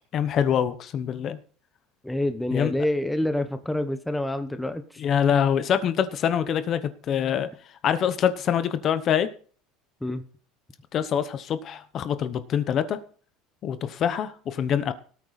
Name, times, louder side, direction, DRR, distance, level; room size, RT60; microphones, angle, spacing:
voice 1, 0.1-1.4 2.5-2.7 5.0-7.5 7.8-9.3 10.9-13.0 13.6-14.9, left 8 dB, 30° left, 12 dB, 1.0 m, -25 dB
voice 2, 2.0-5.0 10.0-10.2, left 1 dB, 5° left, 8 dB, 1.0 m, -27 dB
18.0 x 9.0 x 4.2 m, 0.43 s
cardioid pair, 170°, 0 cm